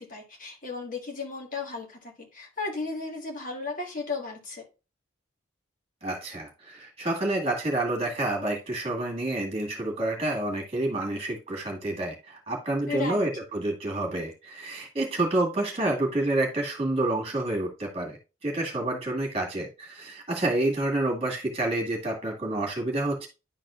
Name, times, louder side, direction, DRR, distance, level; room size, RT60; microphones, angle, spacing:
voice 1, 0.0-4.6 12.9-13.3, left 4 dB, 40° left, 1.6 m, -35 dB
voice 2, 6.0-23.3, right 2 dB, 30° right, 2.0 m, -28 dB
11.0 x 4.1 x 2.5 m
head